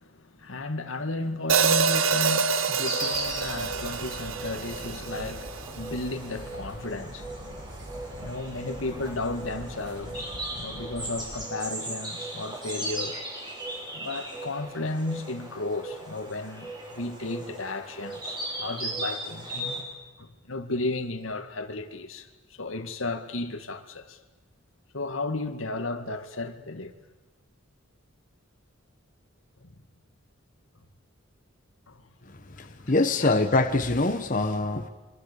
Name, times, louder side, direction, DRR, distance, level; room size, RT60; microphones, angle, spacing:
voice 1, 0.0-7.3 8.2-13.2 13.9-19.8 20.2-22.3 22.6-24.2 24.9-26.9 29.6-29.8 31.9-32.0 33.2-33.3, left 2 dB, 85° left, 2.2 m, -34 dB
Hi-hat, 1.5-5.7, right 5 dB, 80° right, 1.0 m, -26 dB
Insect, 2.8-19.8, right 1 dB, 20° right, 6.3 m, -37 dB
sound 1, 3.1-11.4, right 1 dB, 60° right, 2.0 m, -44 dB
voice 2, 32.6-34.9, left 2 dB, 40° left, 1.3 m, -24 dB
27.0 x 25.0 x 7.0 m
head